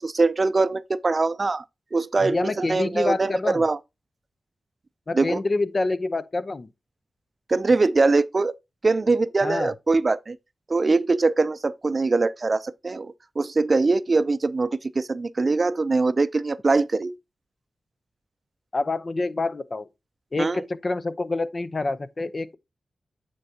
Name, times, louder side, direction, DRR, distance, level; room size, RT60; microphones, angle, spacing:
voice 1, 0.0-1.6 1.9-3.8 5.1-5.4 7.5-8.5 8.8-10.4 10.7-17.2 20.4-20.7, right 3 dB, 45° right, 0.5 m, -22 dB
voice 2, 2.2-3.6 5.1-6.7 9.4-9.7 18.7-19.9 20.3-22.6, left 2 dB, 45° left, 0.7 m, -27 dB
9.1 x 4.6 x 2.8 m
cardioid pair, 60°, 0 cm